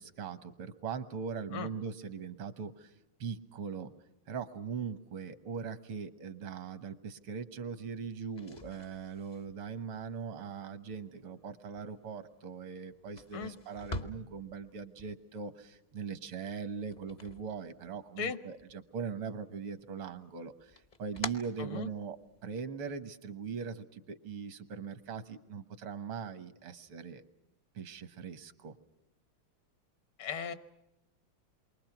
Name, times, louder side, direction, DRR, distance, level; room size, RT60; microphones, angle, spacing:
voice 1, 0.0-2.9 3.2-3.9 4.3-27.2 27.7-28.7, right 6 dB, 85° right, 11 dB, 2.1 m, -40 dB
sound 1, 8.2-18.2 18.6-19.4 19.8-22.4, left 2 dB, 45° left, 0.5 m, -47 dB
voice 2, 21.6-21.9 30.2-30.5, left 6 dB, 75° left, 11 dB, 2.1 m, -37 dB
28.5 x 23.5 x 5.9 m, 0.88 s
omnidirectional pair, 2.3 m